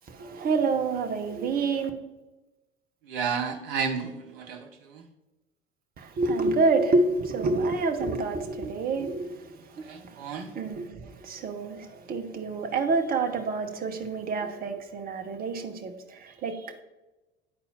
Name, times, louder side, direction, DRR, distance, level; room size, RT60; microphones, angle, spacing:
voice 1, 0.1-1.9 6.0-16.8, right 3 dB, 30° right, 0.8 m, -28 dB
voice 2, 3.1-4.6 4.9-5.0 9.8-10.5, right 6 dB, 60° right, 0.9 m, -31 dB
10.5 x 4.2 x 2.7 m
figure-of-eight pair, 70°, 31 cm